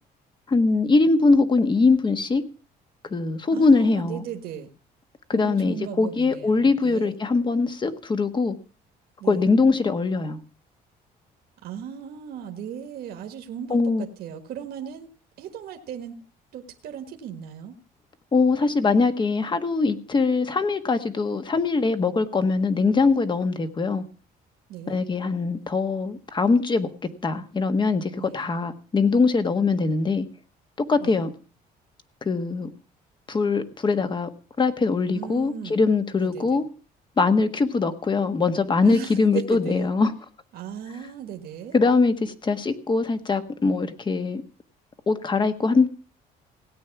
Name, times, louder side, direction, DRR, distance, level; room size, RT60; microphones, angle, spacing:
voice 1, 0.5-2.4 3.1-4.2 5.3-8.6 9.3-10.4 13.7-14.1 18.3-24.0 24.9-26.9 27.2-30.2 30.8-31.3 32.2-32.7 33.3-34.3 34.6-36.6 37.2-40.1 41.7-44.4 45.1-45.9, left 4 dB, 25° left, 9 dB, 1.5 m, -22 dB
voice 2, 3.5-4.7 5.3-7.1 9.2-9.5 11.6-15.1 15.4-16.2 16.5-17.8 24.7-25.0 28.2-28.5 31.0-31.2 35.1-35.8 36.2-36.6 38.8-39.9 40.5-41.8, right 8 dB, 65° right, 4 dB, 1.6 m, -37 dB
17.0 x 8.9 x 5.9 m, 0.39 s
cardioid pair, 110°, 17 cm